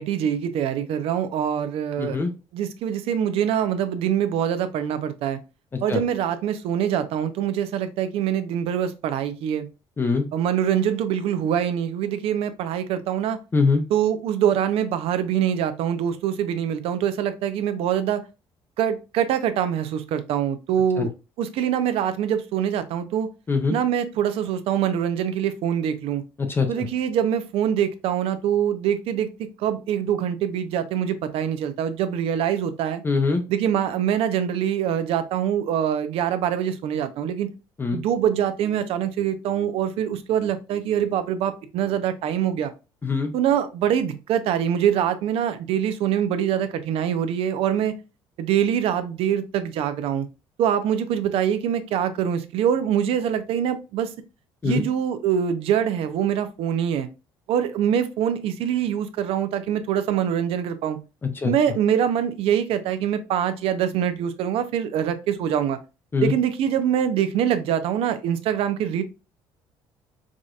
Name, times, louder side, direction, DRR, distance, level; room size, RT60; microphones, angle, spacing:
voice 1, 0.0-2.2 2.5-5.4 5.8-9.7 10.3-13.4 13.9-18.2 18.8-21.1 21.4-23.3 23.7-26.2 26.7-29.3 29.6-33.0 33.5-37.5 37.9-42.7 43.3-47.9 48.4-50.3 50.6-54.1 54.6-57.1 57.5-61.0 61.4-65.8 66.2-69.0, right 9 dB, 70° right, 11 dB, 0.6 m, -24 dB
voice 2, 2.0-2.3 5.7-6.0 10.0-10.3 13.5-13.8 21.0-21.1 23.5-23.8 26.4-26.9 33.0-33.4 37.8-38.0 43.0-43.3 54.6-54.8 61.2-61.5 66.1-66.3, left 4 dB, 20° left, 5 dB, 0.6 m, -23 dB
4.8 x 2.7 x 2.4 m, 0.29 s
cardioid pair, 115°, 10 cm